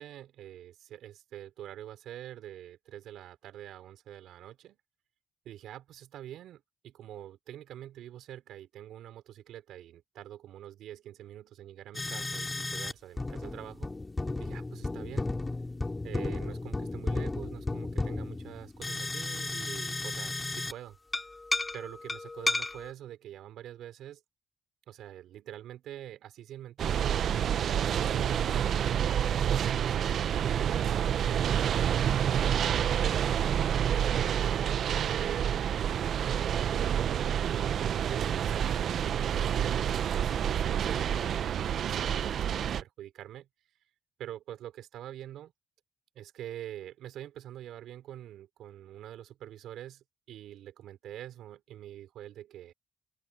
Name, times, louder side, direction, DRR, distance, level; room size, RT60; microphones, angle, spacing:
voice 1, 0.0-4.8 5.4-13.9 14.4-15.3 16.0-21.0 21.7-24.2 24.9-33.1 33.8-36.4 37.4-38.9 39.3-43.5 44.2-45.5 46.2-52.7, right 12 dB, 80° right, 5.5 m, -45 dB
sound 1, 11.9-12.9 13.2-20.8 21.1-22.9, left 2 dB, 20° left, 4.7 m, -34 dB
sound 2, 26.8-42.8, right 9 dB, 65° right, 0.6 m, -28 dB
open air
cardioid pair, 90°, 0 cm